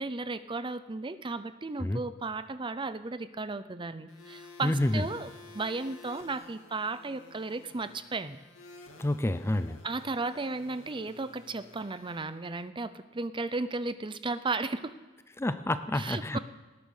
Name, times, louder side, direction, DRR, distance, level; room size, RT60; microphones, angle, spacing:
voice 1, 0.0-8.4 9.8-14.9 15.9-16.4, right 3 dB, 25° right, 13 dB, 0.7 m, -35 dB
sound 1, 4.1-12.2, left 3 dB, 90° left, 2.3 m, -52 dB
voice 2, 4.6-5.0 9.0-9.8 15.4-16.4, left 1 dB, 15° left, 12 dB, 0.5 m, -28 dB
19.0 x 9.5 x 6.6 m, 1.3 s
head